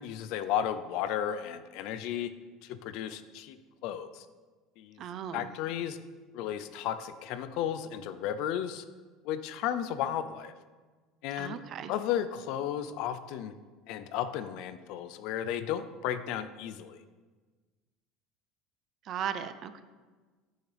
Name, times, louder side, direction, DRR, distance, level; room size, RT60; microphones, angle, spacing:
voice 1, 0.0-2.3 2.6-3.6 3.8-4.3 4.8-5.0 5.3-6.0 6.3-8.8 9.2-10.5 11.2-11.6 11.9-13.5 13.9-17.0, left 10 dB, 60° left, 12 dB, 0.5 m, -34 dB
voice 2, 5.0-5.5 11.4-11.9 19.0-19.8, right 9 dB, 40° right, 11 dB, 0.5 m, -37 dB
10.0 x 8.7 x 3.4 m, 1.4 s
cardioid pair, 160°, 0 cm